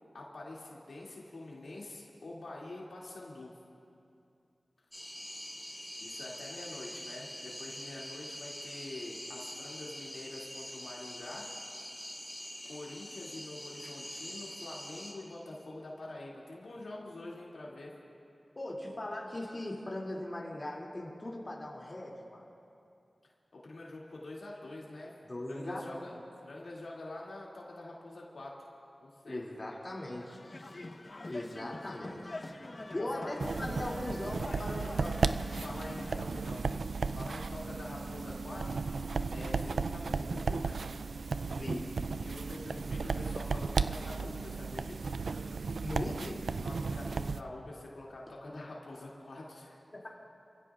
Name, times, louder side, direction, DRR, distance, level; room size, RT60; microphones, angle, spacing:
voice 1, 0.1-3.5 6.0-11.5 12.6-17.9 23.5-25.1 25.5-26.1 26.4-28.6 29.0-29.4 33.0-33.4 35.6-38.9 39.3-40.8 42.2-45.0 46.6-49.8, left 2 dB, 85° left, -4 dB, 2.5 m, -46 dB
sound 1, 4.9-15.1, left 1 dB, 5° left, 4.0 m, -44 dB
voice 2, 18.6-22.5 25.3-25.8 29.3-30.8 31.3-32.4 32.9-35.2 41.5-41.8 45.8-46.5 49.9-50.1, left 1 dB, 35° left, -3 dB, 2.6 m, -39 dB
sound 2, 29.8-36.2, left 2 dB, 50° left, 1.0 m, -45 dB
sound 3, 33.4-47.4, right 4 dB, 90° right, 0.3 m, -34 dB
27.5 x 16.0 x 2.5 m, 2.5 s
wide cardioid pair, 70°, 0 cm